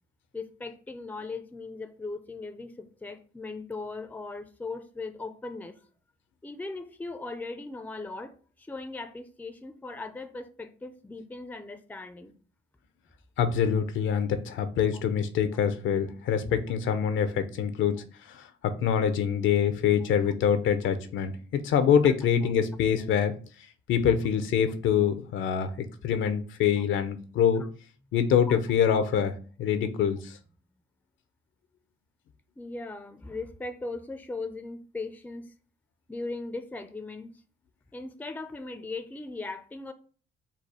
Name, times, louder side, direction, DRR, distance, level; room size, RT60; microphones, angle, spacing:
voice 1, 0.3-5.8 6.4-12.3 22.0-22.1 27.5-27.7 28.5-28.6 32.6-35.5 36.1-37.4 37.9-39.9, left 3 dB, 10° left, 0.5 m, -38 dB
voice 2, 13.4-23.3 23.9-27.6 28.1-29.3 29.6-30.4, left 8 dB, 75° left, 0.6 m, -25 dB
4.1 x 2.3 x 4.7 m
cardioid pair, 90°, 20 cm